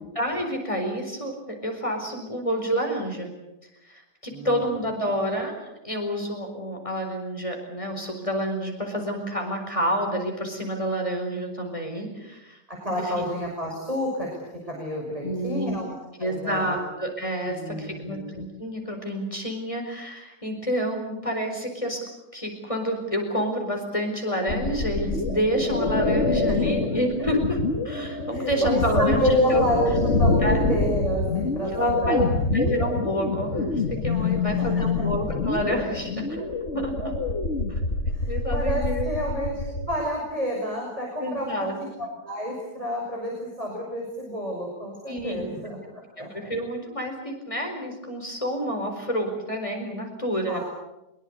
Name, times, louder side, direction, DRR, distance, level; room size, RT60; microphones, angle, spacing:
voice 1, 0.1-3.3 3.8-5.5 5.8-12.6 13.0-13.1 15.2-15.9 16.2-22.0 22.3-27.6 27.8-29.7 30.4-30.6 31.7-36.5 36.7-37.1 37.7-37.8 38.3-39.1 41.2-41.7 45.1-45.5 45.8-50.6, equal, 20° left, 2 dB, 4.9 m, -29 dB
voice 2, 4.3-4.7 12.7-14.3 14.6-15.9 16.2-16.8 17.5-18.4 26.5-26.6 28.3-32.2 34.1-35.1 38.1-41.7 42.0-46.5 50.5-50.6, equal, 20° right, -2 dB, 6.0 m, -29 dB
sound 1, 24.5-39.9, left 3 dB, 40° left, 2.5 m, -26 dB
23.5 x 22.5 x 8.3 m, 0.95 s
omnidirectional pair, 1.8 m